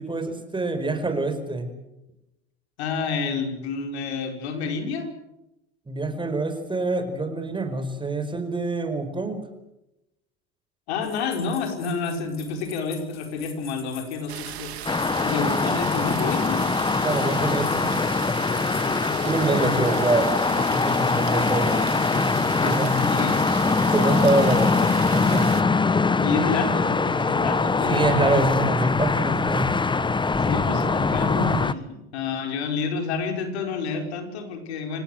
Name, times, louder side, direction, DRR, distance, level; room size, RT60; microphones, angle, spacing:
voice 1, 0.0-1.7 5.9-9.4 17.0-18.0 19.2-23.0 23.9-24.7 25.1-25.6 27.9-29.7, right 2 dB, 15° right, 8 dB, 5.1 m, -26 dB
voice 2, 2.8-5.1 10.9-14.7 15.2-16.6 18.8-19.8 22.6-23.4 24.4-24.5 25.4-25.6 26.2-28.2 30.3-35.0, left 5 dB, 75° left, 5 dB, 5.1 m, -29 dB
sound 1, 11.0-19.0, left 8 dB, 40° left, 4.4 m, -47 dB
sound 2, 14.3-25.6, right 13 dB, 75° right, 2.6 m, -37 dB
sound 3, 14.9-31.7, left 4 dB, 15° left, 1.2 m, -23 dB
27.5 x 17.0 x 8.0 m, 0.89 s
hypercardioid pair, 80°, 33 cm